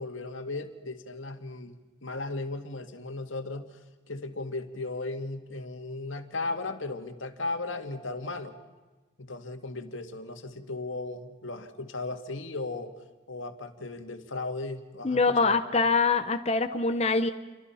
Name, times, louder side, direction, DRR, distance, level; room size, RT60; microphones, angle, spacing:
voice 1, 0.0-3.7 4.1-8.5 9.3-12.9 13.3-15.6, left 2 dB, 90° left, 7 dB, 2.1 m, -36 dB
voice 2, 15.0-17.3, left 4 dB, 35° left, 7 dB, 1.0 m, -24 dB
29.5 x 24.5 x 5.8 m, 1.2 s
head